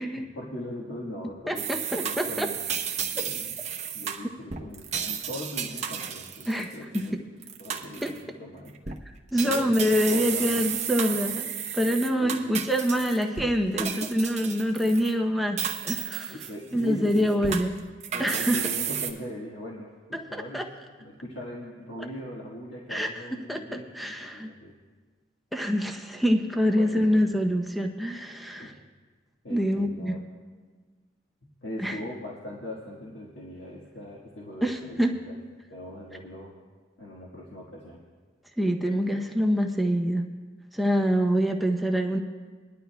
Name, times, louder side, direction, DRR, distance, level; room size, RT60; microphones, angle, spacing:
voice 1, 0.1-1.7 2.0-2.6 3.1-3.5 3.9-7.1 7.6-8.7 9.3-10.6 12.2-12.4 13.8-14.1 16.3-17.5 18.1-20.6 21.0-24.7 26.8-27.3 28.6-28.8 29.4-30.2 31.6-35.4 35.7-36.5 37.0-38.0, left 1 dB, 90° left, -4 dB, 1.6 m, -40 dB
voice 2, 1.5-2.5 6.5-7.1 8.0-8.1 9.3-11.5 11.7-16.4 16.7-17.7 18.2-18.7 20.1-20.7 22.9-23.1 23.5-24.5 25.5-28.7 29.5-30.1 31.8-32.0 34.6-35.2 38.6-40.3 40.7-42.2, equal, ahead, 2 dB, 0.7 m, -26 dB
sound 1, 1.6-7.1 7.4-8.2 8.7-9.0 9.4-13.5 13.8-15.1 15.6-16.8 17.1-19.1, right 8 dB, 35° right, 0.8 m, -32 dB
22.0 x 11.5 x 2.3 m, 1.5 s
head